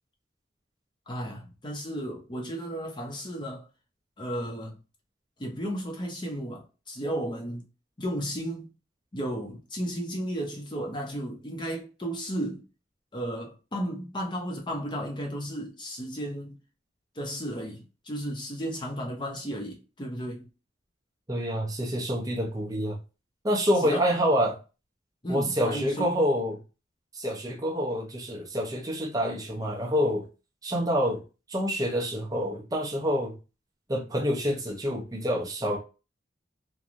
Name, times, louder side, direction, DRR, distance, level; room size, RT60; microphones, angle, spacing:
voice 1, 1.1-3.7 4.2-4.8 5.4-7.6 8.0-8.7 9.1-12.6 13.1-16.6 17.1-20.5 23.8-24.1 25.2-26.1, equal, 25° left, 0.7 m, -34 dB
voice 2, 21.3-23.0 23.4-24.6 25.3-26.6 27.1-30.3 30.6-31.2 31.5-33.3 33.9-35.8, equal, 20° right, 0.6 m, -27 dB
2.9 x 2.2 x 2.5 m
head